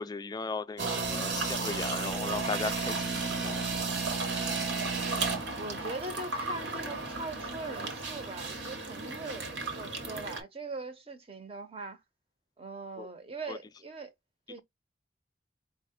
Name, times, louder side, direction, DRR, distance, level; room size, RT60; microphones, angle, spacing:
voice 1, 0.0-3.7 13.0-13.1 13.5-13.6, left 4 dB, 20° left, 0.3 m, -37 dB
sound 1, 0.8-10.4, right 3 dB, 85° right, 1.1 m, -33 dB
voice 2, 5.5-12.0 12.6-14.1 14.5-14.6, right 3 dB, 30° right, 0.8 m, -41 dB
4.9 x 2.1 x 3.6 m
head